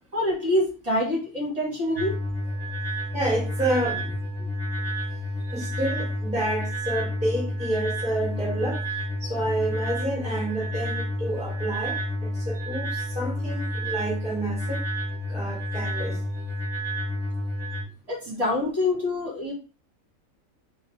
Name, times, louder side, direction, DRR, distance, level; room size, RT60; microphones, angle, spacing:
voice 1, 0.1-2.2 12.6-12.7 16.0-16.1 18.1-19.5, left 1 dB, 25° right, 1.9 m, -26 dB
sound 1, 2.0-17.8, equal, 20° left, 1.4 m, -30 dB
voice 2, 2.8-4.1 5.5-14.8 15.3-16.2, right 1 dB, 5° right, 1.2 m, -29 dB
3.9 x 2.6 x 4.2 m
omnidirectional pair, 1.5 m